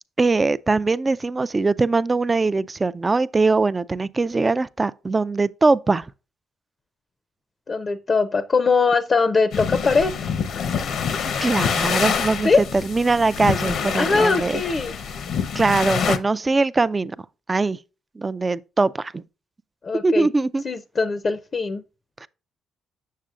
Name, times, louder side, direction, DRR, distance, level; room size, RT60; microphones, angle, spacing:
voice 1, 0.2-6.1 11.4-14.6 15.5-17.2 17.5-17.8 18.2-19.2 20.0-20.6 22.2-22.3, right 3 dB, 25° right, 0.4 m, -21 dB
voice 2, 7.7-10.1 12.4-12.6 13.9-14.9 19.8-20.3 20.6-21.8, left 4 dB, 40° left, 0.6 m, -21 dB
sound 1, 9.5-16.2, left 6 dB, 70° left, 0.8 m, -26 dB
7.4 x 6.6 x 2.4 m
cardioid pair, 90°, 0 cm